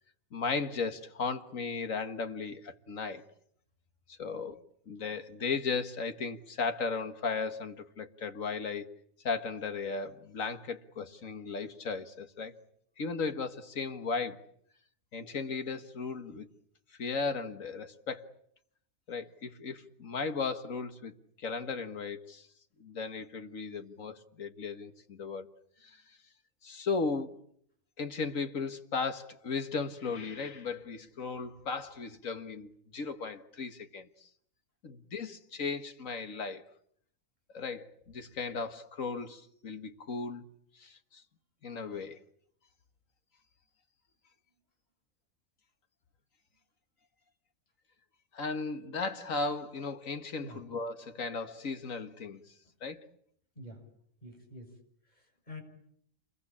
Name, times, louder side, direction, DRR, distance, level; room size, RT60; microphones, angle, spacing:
voice 1, 0.3-3.2 4.1-4.6 4.9-8.9 9.2-12.6 13.0-14.4 15.1-16.5 17.0-18.3 19.1-22.5 22.8-25.5 25.8-26.0 26.6-27.4 28.0-34.3 34.8-36.7 37.5-40.4 40.8-41.2 41.6-42.2 48.3-52.4 52.8-53.1, left 4 dB, 70° left, 2.0 m, -36 dB
voice 2, 53.5-53.9 54.2-55.6, left 1 dB, 30° left, 6.7 m, -48 dB
28.5 x 22.5 x 8.6 m
omnidirectional pair, 1.4 m